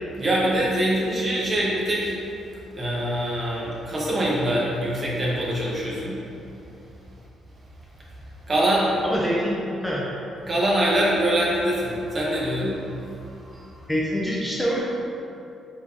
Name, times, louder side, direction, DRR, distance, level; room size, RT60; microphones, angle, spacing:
voice 1, 0.1-2.1 2.7-6.2 8.5-8.9 10.4-12.8, right 1 dB, 40° right, -5 dB, 1.1 m, -24 dB
voice 2, 9.0-10.1 13.9-14.8, equal, ahead, -6 dB, 0.6 m, -25 dB
4.5 x 3.7 x 2.7 m, 2.7 s
cardioid pair, 90°, 0 cm